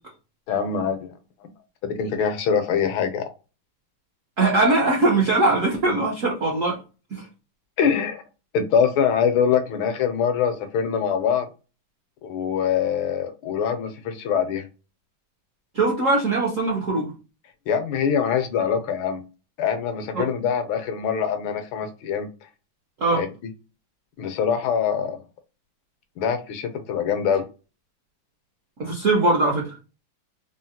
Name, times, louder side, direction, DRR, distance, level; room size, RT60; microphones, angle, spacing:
voice 1, 0.5-1.1 1.8-3.3 7.8-8.2 8.5-11.5 12.2-14.7 17.7-19.2 19.6-22.3 23.1-23.3 24.2-25.2 26.2-27.5, left 7 dB, 75° left, 8 dB, 1.4 m, -23 dB
voice 2, 4.4-6.8 7.1-7.2 15.7-17.1 20.1-20.3 23.0-23.2 28.8-29.8, right 2 dB, 65° right, -2 dB, 0.7 m, -21 dB
3.7 x 2.1 x 2.7 m, 0.31 s
omnidirectional pair, 2.4 m